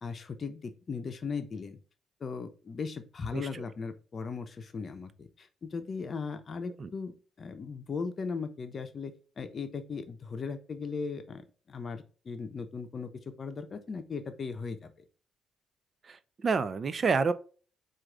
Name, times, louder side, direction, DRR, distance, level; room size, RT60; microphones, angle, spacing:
voice 1, 0.0-1.8 2.2-13.1 13.4-14.9, left 5 dB, 45° left, 8 dB, 0.7 m, -38 dB
voice 2, 16.0-17.3, right 5 dB, 40° right, 14 dB, 0.3 m, -28 dB
4.6 x 2.5 x 3.7 m, 0.38 s
cardioid pair, 90°, 0 cm